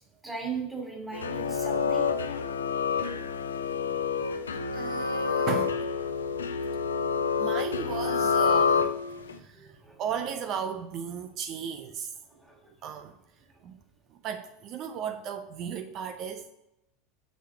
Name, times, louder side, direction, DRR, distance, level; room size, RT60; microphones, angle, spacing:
voice 1, 0.2-2.1 7.1-7.2 9.5-9.9 12.4-12.6, right 5 dB, 5° right, 0 dB, 2.6 m, -37 dB
sound 1, 1.1-9.3, left 6 dB, 70° left, 0.5 m, -28 dB
voice 2, 4.7-5.8 7.4-8.9 9.2-9.7 10.0-12.1 12.8-13.2 13.6-13.7 14.2-16.5, right 8 dB, 40° right, 7 dB, 0.6 m, -35 dB
6.5 x 6.5 x 4.5 m, 0.87 s
figure-of-eight pair, 80°, 0 cm